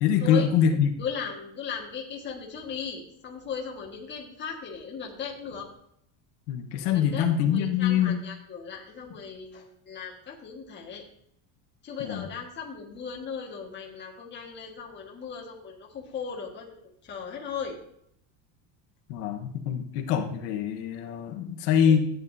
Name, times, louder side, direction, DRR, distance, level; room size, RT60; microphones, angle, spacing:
voice 1, 0.0-0.9 6.5-8.2 12.0-12.3 19.1-22.1, left 8 dB, 75° left, 4 dB, 1.3 m, -24 dB
voice 2, 1.0-5.7 6.9-11.0 11.8-17.8 21.8-22.0, left 6 dB, 20° left, -1 dB, 1.7 m, -37 dB
13.5 x 9.6 x 2.7 m, 0.69 s
cardioid pair, 175°, 48 cm